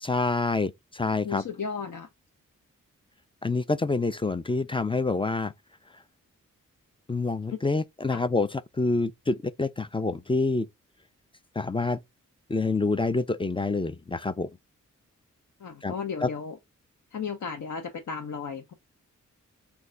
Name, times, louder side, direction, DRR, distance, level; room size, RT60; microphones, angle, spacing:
voice 1, 0.0-1.4 3.4-5.5 7.1-8.5 8.8-10.7 11.6-12.0 12.5-14.5 15.8-15.9 16.2-16.3, left 3 dB, 15° left, 0.3 m, -27 dB
voice 2, 1.2-2.1 8.1-8.2 15.6-16.6 17.1-18.7, left 6 dB, 65° left, 0.7 m, -34 dB
3.1 x 2.3 x 3.7 m
cardioid pair, 40°, 33 cm